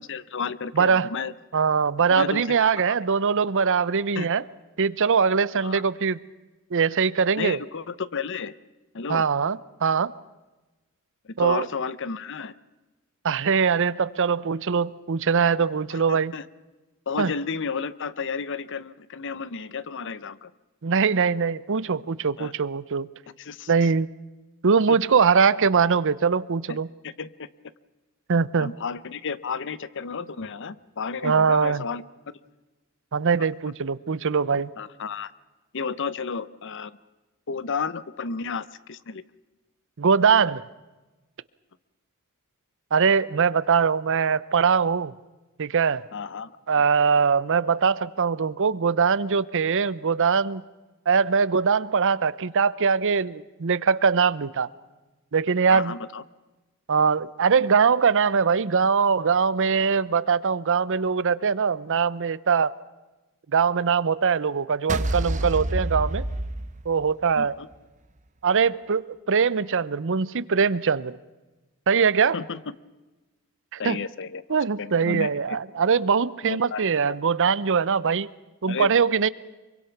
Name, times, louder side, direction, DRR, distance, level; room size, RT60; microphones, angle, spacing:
voice 1, 0.0-1.3 2.1-2.7 4.2-4.3 5.6-5.8 7.4-8.5 8.9-9.2 11.2-12.5 15.9-16.4 17.1-20.5 22.4-22.5 23.4-23.9 24.9-25.0 26.7-26.8 27.0-27.5 28.6-32.0 33.4-33.5 34.8-35.3 35.7-37.0 37.5-39.2 46.1-46.8 55.7-56.2 67.3-67.7 72.3-72.6 73.8-74.4 74.8-75.6 76.5-77.1 78.7-78.9, left 5 dB, 60° left, 0.8 m, -32 dB
voice 2, 0.8-1.1 1.5-4.4 4.8-6.2 6.7-7.6 9.1-10.1 11.4-11.7 13.2-16.3 17.2-17.3 20.8-23.1 23.7-24.1 24.6-26.9 28.3-28.7 31.2-31.8 33.1-34.7 40.0-40.6 42.9-45.1 45.6-46.0 46.7-50.6 51.1-54.7 55.3-56.0 56.9-62.7 63.5-66.2 66.9-67.5 68.4-71.2 71.9-72.4 73.7-74.0 74.5-78.3 78.6-79.3, right 5 dB, 60° right, 0.7 m, -22 dB
sound 1, 64.9-67.2, right 1 dB, 35° right, 1.0 m, -27 dB
24.5 x 24.0 x 5.9 m
head